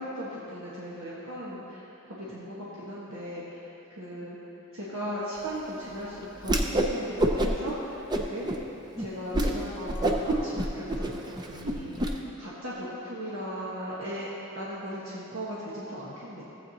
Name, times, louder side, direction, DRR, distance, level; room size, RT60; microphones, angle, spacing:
voice 1, 0.0-3.6 3.9-4.4 4.7-8.5 9.0-14.3 14.5-16.4, equal, 70° right, -8 dB, 1.4 m, -37 dB
Whoosh swoosh swish, 6.4-6.9 7.2-7.7 8.1-8.6 9.0-9.1 9.3-9.5 9.9-12.1, right 1 dB, 20° right, 0.6 m, -26 dB
15.0 x 8.1 x 2.9 m, 2.9 s
head